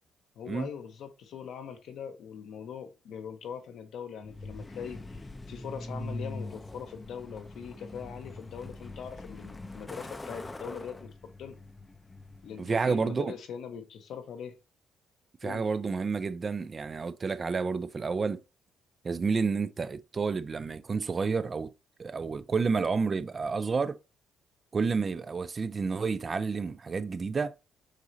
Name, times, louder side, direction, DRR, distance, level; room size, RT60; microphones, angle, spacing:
voice 1, 0.4-11.1 11.4-11.6 12.4-14.6 15.4-15.7, left 7 dB, 75° left, 1.0 m, -41 dB
Truck, 4.2-13.0, left 2 dB, 20° left, 0.6 m, -43 dB
voice 2, 12.6-13.3 15.4-18.4 19.0-21.7 22.0-24.0 24.7-27.5, right 4 dB, 35° right, 0.4 m, -30 dB
6.4 x 3.0 x 2.7 m
cardioid pair, 90°, 0 cm